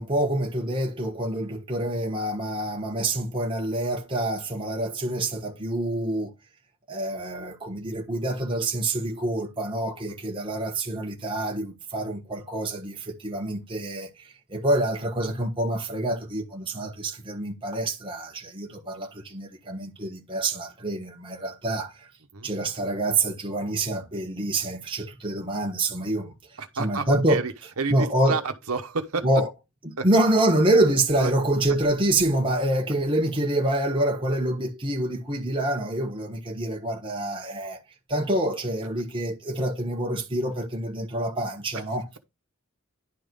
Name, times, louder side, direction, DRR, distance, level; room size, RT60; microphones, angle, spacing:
voice 1, 0.0-6.3 6.9-22.1 22.4-26.3 26.8-27.4 27.9-28.4 29.2-29.5 29.8-37.8 38.1-42.0, right 1 dB, 25° right, 1.3 m, -26 dB
voice 2, 26.6-29.2 30.0-30.1 31.2-31.3, right 4 dB, 85° right, 1.1 m, -30 dB
10.5 x 3.7 x 5.3 m
head